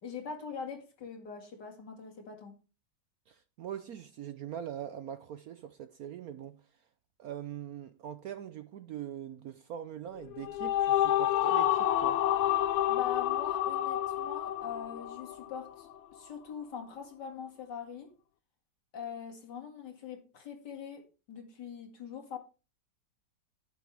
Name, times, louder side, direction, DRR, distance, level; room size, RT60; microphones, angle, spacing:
voice 1, 0.0-2.5 12.9-18.1 18.9-22.4, left 7 dB, 65° left, 2.7 m, -42 dB
voice 2, 3.3-6.6 7.2-12.2, right 10 dB, 65° right, 0.9 m, -42 dB
sound 1, 10.2-15.7, left 12 dB, 90° left, 1.5 m, -29 dB
11.0 x 8.5 x 3.4 m
omnidirectional pair, 2.0 m